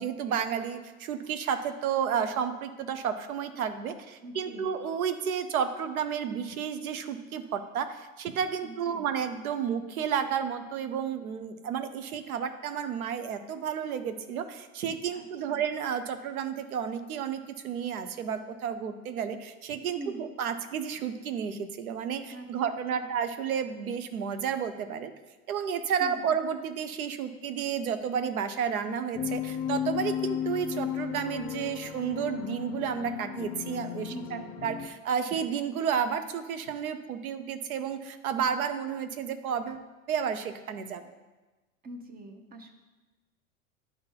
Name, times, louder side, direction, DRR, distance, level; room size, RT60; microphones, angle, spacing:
voice 1, 0.0-25.1 25.5-41.0, right 7 dB, 75° right, 9 dB, 0.8 m, -31 dB
voice 2, 4.2-4.7 8.6-9.1 15.1-15.6 20.0-20.3 22.3-23.1 26.0-26.4 34.0-34.6 41.8-42.7, right 2 dB, 20° right, 6 dB, 0.8 m, -44 dB
sound 1, 29.1-34.9, left 10 dB, 40° left, 0.6 m, -34 dB
10.5 x 3.9 x 3.8 m, 1.2 s
hypercardioid pair, 90°, 43 cm